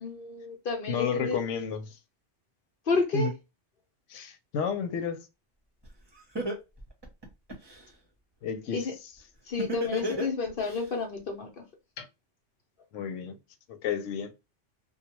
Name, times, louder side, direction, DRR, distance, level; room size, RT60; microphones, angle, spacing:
voice 1, 0.0-1.4 2.9-3.3 8.7-8.9 9.5-11.5, left 4 dB, 55° left, 0.8 m, -30 dB
voice 2, 0.9-2.0 3.1-3.3 4.1-5.3 8.4-9.1 12.0-12.1 12.9-13.3 13.7-14.3, left 6 dB, 85° left, 0.9 m, -32 dB
Laughter, 5.8-5.9 6.3-7.8 9.6-10.8, left 1 dB, 25° right, 0.8 m, -31 dB
2.3 x 2.2 x 2.9 m
omnidirectional pair, 1.2 m